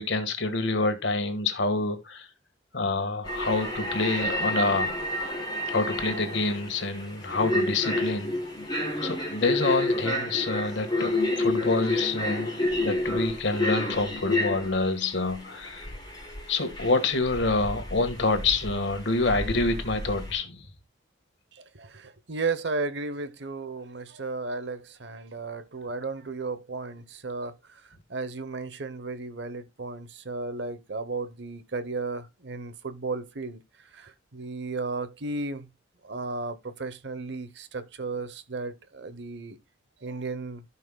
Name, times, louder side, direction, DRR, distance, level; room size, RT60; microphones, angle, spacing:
voice 1, 0.0-2.3 2.7-4.9 5.7-8.3 9.0-11.1 11.4-12.5 12.8-15.9 16.5-20.7, left 3 dB, 70° left, 1.5 m, -27 dB
sound 1, 3.2-20.4, left 1 dB, 20° left, 3.2 m, -30 dB
voice 2, 21.5-27.8 28.1-33.6 33.9-35.7 36.0-39.6 40.0-40.6, right 3 dB, 65° right, 0.9 m, -34 dB
15.0 x 5.6 x 2.2 m
head